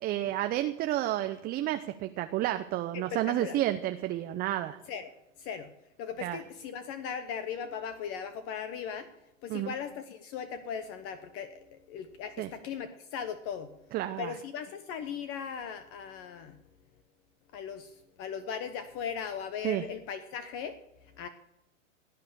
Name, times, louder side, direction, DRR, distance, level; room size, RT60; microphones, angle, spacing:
voice 1, 0.0-4.8 6.2-6.4 9.5-9.7 12.4-12.5 13.9-14.4 19.6-19.8, right 14 dB, 25° right, 8 dB, 0.6 m, -31 dB
voice 2, 2.9-3.6 4.9-5.1 5.4-5.7 6.0-9.1 9.4-13.7 14.2-16.6 17.5-20.8 21.2-21.3, left 7 dB, 35° left, 10 dB, 1.1 m, -38 dB
16.5 x 8.7 x 6.9 m, 0.88 s
hypercardioid pair, 115°, 39 cm